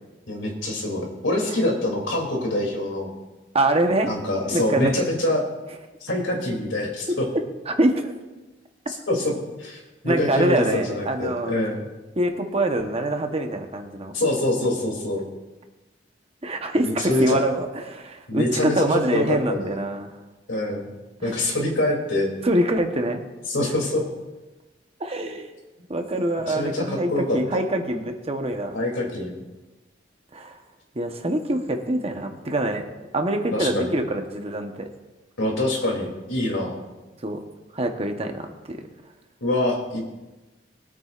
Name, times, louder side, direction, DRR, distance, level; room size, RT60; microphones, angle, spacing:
voice 1, 0.3-3.1 4.1-5.4 6.0-7.3 9.1-9.3 9.6-11.9 14.1-15.2 16.8-17.4 18.3-19.8 20.5-20.9 21.2-22.3 23.5-24.0 26.5-27.6 28.7-29.4 33.5-33.9 35.4-36.8 39.4-40.0, left 1 dB, 85° left, 0 dB, 2.9 m, -25 dB
voice 2, 3.5-4.1 4.5-4.9 7.7-8.1 10.0-11.5 12.2-14.1 16.4-20.1 21.2-21.4 22.4-23.2 25.0-25.5 25.9-28.8 30.3-30.6 30.9-32.8 33.1-34.9 37.2-37.4 37.7-38.9, right 1 dB, 30° right, 5 dB, 1.0 m, -24 dB
22.0 x 8.7 x 2.5 m, 1.1 s
head